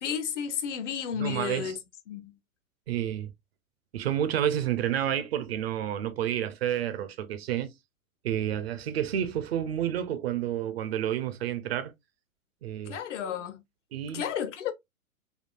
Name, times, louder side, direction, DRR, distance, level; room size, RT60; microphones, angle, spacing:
voice 1, 0.0-1.8 2.1-2.3 12.9-13.6 14.1-14.7, left 8 dB, 55° left, 0.8 m, -32 dB
voice 2, 1.2-1.7 2.9-3.3 3.9-7.7 8.2-11.9 12.6-13.0 13.9-14.2, right 10 dB, 45° right, 0.5 m, -30 dB
3.5 x 2.4 x 2.3 m
figure-of-eight pair, 115°, 42 cm